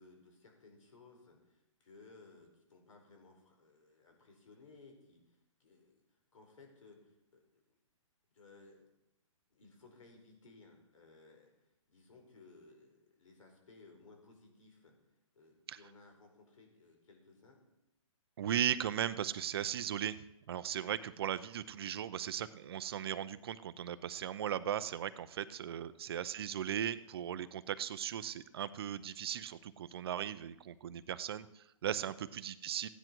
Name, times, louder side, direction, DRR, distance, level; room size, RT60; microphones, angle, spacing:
voice 1, 0.0-7.8 8.3-8.9 9.5-14.9 15.3-17.6 25.7-26.0 31.9-32.2, left 3 dB, 75° left, 3 dB, 4.6 m, -60 dB
voice 2, 18.4-32.9, right 10 dB, 45° right, 14 dB, 0.6 m, -37 dB
15.5 x 10.0 x 4.6 m, 0.90 s
hypercardioid pair, 160°, 17 cm